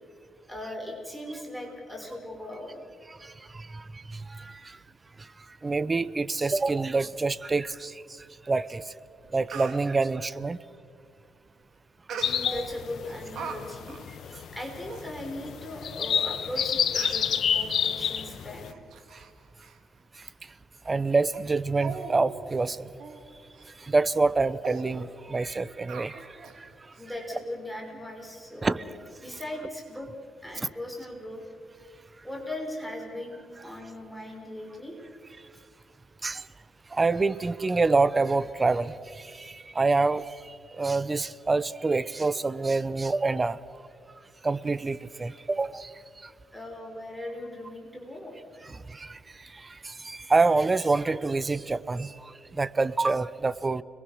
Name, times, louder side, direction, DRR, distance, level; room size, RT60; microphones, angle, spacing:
voice 1, 0.5-2.8 12.1-14.1 14.5-18.7 27.0-28.9 29.2-30.1 30.4-31.4 32.2-35.0 46.5-48.7, left 1 dB, ahead, 1 dB, 5.2 m, -39 dB
voice 2, 3.1-4.8 5.2-5.3 5.6-8.9 9.3-10.6 12.5-12.7 20.2-20.3 20.9-22.9 23.8-26.7 28.6-28.8 30.6-30.7 36.2-36.5 36.9-43.6 44.4-46.3 48.7-53.8, right 3 dB, 25° right, 17 dB, 0.8 m, -27 dB
Speech, 8.8-8.9 9.2-9.8 12.1-12.6 13.1-13.6 13.9-14.0 14.6-14.7 14.9-15.1 15.8-15.9 16.6-16.7 16.9-17.3 18.0-18.2 18.6-19.3 19.6-19.8 20.2-20.3 20.8-21.0 21.3-21.4 21.7-22.1 22.5-22.6 23.0-23.2 23.5-23.7 24.1-24.2 24.6-24.8 25.9-26.6 26.9-27.0, right 6 dB, 65° right, 2.9 m, -40 dB
sound 1, 12.2-18.7, left 8 dB, 65° left, 1.2 m, -29 dB
30.0 x 22.0 x 6.5 m, 2.2 s
cardioid pair, 90°, 0 cm